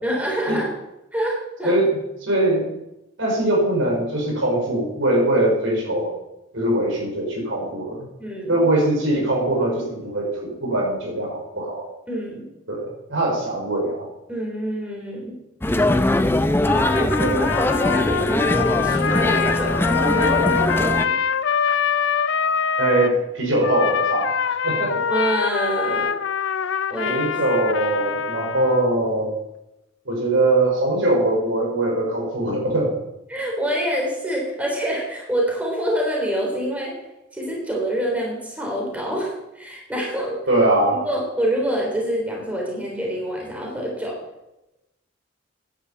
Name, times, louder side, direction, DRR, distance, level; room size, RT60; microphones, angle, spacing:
voice 1, 0.0-0.7 1.1-1.7 8.2-8.6 12.1-12.5 14.3-15.4 16.9-17.2 17.9-21.1 25.1-26.1 26.9-27.2 33.3-37.0 37.3-40.4 40.9-44.2, right 1 dB, 5° right, -2 dB, 3.6 m, -26 dB
voice 2, 1.6-2.7 3.2-6.1 6.5-8.0 8.5-11.8 12.7-14.1 17.2-17.4 22.8-24.3 24.6-25.0 27.1-29.3 30.1-32.9 40.5-41.0, right 1 dB, 70° right, -1 dB, 5.3 m, -22 dB
sound 1, 15.6-21.0, left 1 dB, 10° left, 0.6 m, -21 dB
Trumpet, 16.7-23.1 23.6-28.9, left 6 dB, 65° left, 0.6 m, -24 dB
10.5 x 9.7 x 8.5 m, 0.93 s
head